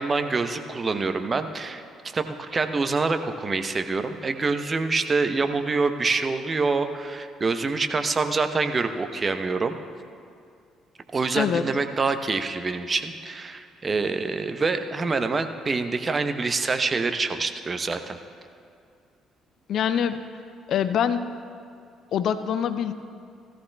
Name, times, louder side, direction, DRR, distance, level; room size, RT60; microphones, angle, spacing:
voice 1, 0.0-9.8 11.1-18.2, right 4 dB, 35° right, 8 dB, 0.8 m, -26 dB
voice 2, 19.7-20.2 20.7-21.4 22.1-22.9, left 8 dB, 60° left, 12 dB, 0.5 m, -24 dB
17.0 x 14.0 x 2.3 m, 2.3 s
figure-of-eight pair, 45°, 0 cm